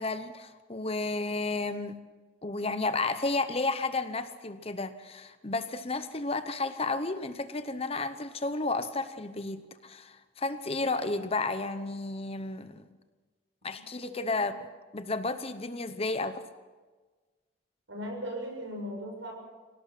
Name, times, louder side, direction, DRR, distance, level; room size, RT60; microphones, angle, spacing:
voice 1, 0.0-2.0 2.4-12.9 13.6-16.4, left 3 dB, 30° left, 11 dB, 0.9 m, -32 dB
voice 2, 13.7-14.3 17.9-19.3, equal, 75° right, 1 dB, 7.0 m, -38 dB
25.5 x 17.5 x 5.9 m, 1.3 s
head